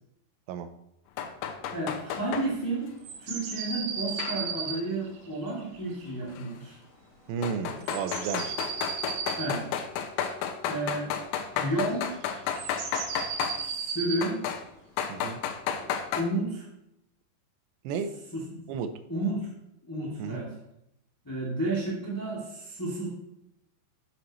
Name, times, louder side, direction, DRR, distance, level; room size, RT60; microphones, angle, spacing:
sound 1, 1.2-2.5 4.2-4.8 6.4-6.5 7.4-13.6 14.2-14.6 15.0-16.2, left 8 dB, 90° left, 3.1 m, -32 dB
voice 1, 1.7-2.9 3.2-6.8 9.3-9.7 9.9-10.1 10.7-11.1 11.5-12.1 13.6-14.4 16.1-16.6 18.3-18.7 19.1-19.5 19.8-20.5 21.2-23.1, right 2 dB, 10° left, -5 dB, 0.9 m, -31 dB
sound 2, 3.0-6.1 7.8-9.5 11.8-12.0 12.4-14.2, right 6 dB, 65° right, 2.3 m, -35 dB
voice 2, 7.3-8.6 15.1-15.4 17.8-18.2 18.7-19.0 20.2-20.4, right 6 dB, 85° right, 10 dB, 3.0 m, -33 dB
8.7 x 7.7 x 3.1 m, 0.82 s
omnidirectional pair, 5.0 m